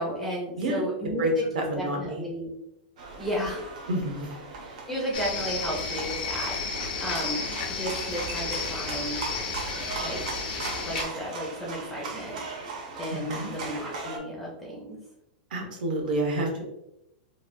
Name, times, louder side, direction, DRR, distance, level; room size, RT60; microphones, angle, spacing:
voice 1, 0.0-1.4 1.8-2.5 3.2-3.7 4.6-7.4 7.7-9.2 10.0-10.2 10.9-12.4 13.0-15.0, equal, 5° left, -5 dB, 0.4 m, -33 dB
voice 2, 1.2-2.2 3.9-4.3 13.1-13.5 15.5-16.6, right 1 dB, 80° right, 1 dB, 0.8 m, -28 dB
sound 1, 3.0-14.2, right 3 dB, 55° right, 0.6 m, -38 dB
sound 2, 5.1-11.0, left 4 dB, 85° left, 0.7 m, -32 dB
3.0 x 2.2 x 2.5 m, 0.87 s
supercardioid pair, 180°, 5 cm